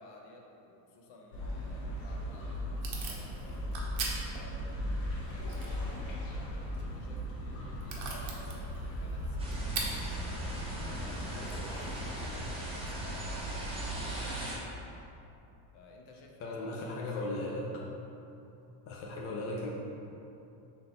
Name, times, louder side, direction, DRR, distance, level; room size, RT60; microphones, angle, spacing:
voice 1, 0.0-4.6 5.3-9.6 10.1-14.7 15.7-17.0, left 2 dB, 55° left, 0 dB, 0.7 m, -54 dB
sound 1, 1.3-14.3, equal, 70° left, 1.3 m, -38 dB
Packing tape duct tape / Tearing, 1.9-12.7, right 4 dB, 70° right, 0.9 m, -44 dB
sound 2, 9.4-14.6, right 1 dB, 10° right, 0.6 m, -40 dB
voice 2, 16.4-17.8 18.9-19.7, left 2 dB, 30° left, -3 dB, 0.4 m, -36 dB
3.8 x 2.9 x 3.8 m, 2.9 s
cardioid pair, 135°, 48 cm